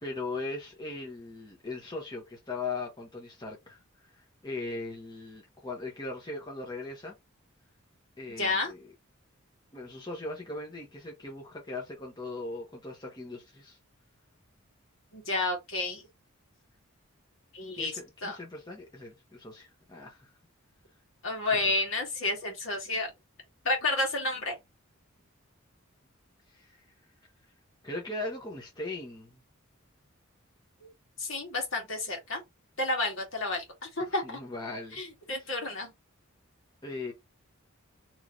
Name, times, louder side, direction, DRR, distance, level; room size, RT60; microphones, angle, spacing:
voice 1, 0.0-7.1 8.2-8.9 9.7-13.8 17.7-20.3 21.5-21.7 26.5-26.8 27.8-29.4 34.0-35.0 35.3-35.5 36.8-37.1, left 2 dB, 20° left, 0.9 m, -39 dB
voice 2, 8.4-8.7 15.1-16.0 17.5-17.9 18.2-18.4 21.2-23.1 23.6-24.6 31.2-32.4 32.8-34.4 34.9-35.9, left 2 dB, 65° left, 1.7 m, -30 dB
3.1 x 2.8 x 3.8 m
head